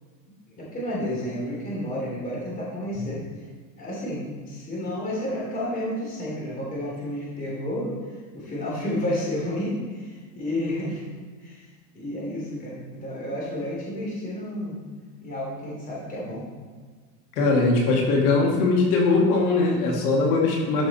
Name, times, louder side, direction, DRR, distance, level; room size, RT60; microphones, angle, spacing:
voice 1, 0.5-3.5 3.8-11.0 11.4-11.7 11.9-14.8 15.2-16.5, left 1 dB, 20° left, -5 dB, 3.2 m, -31 dB
voice 2, 17.4-20.9, left 3 dB, 80° left, -1 dB, 2.3 m, -21 dB
13.0 x 6.0 x 4.3 m, 1.5 s
cardioid pair, 175°, 45 cm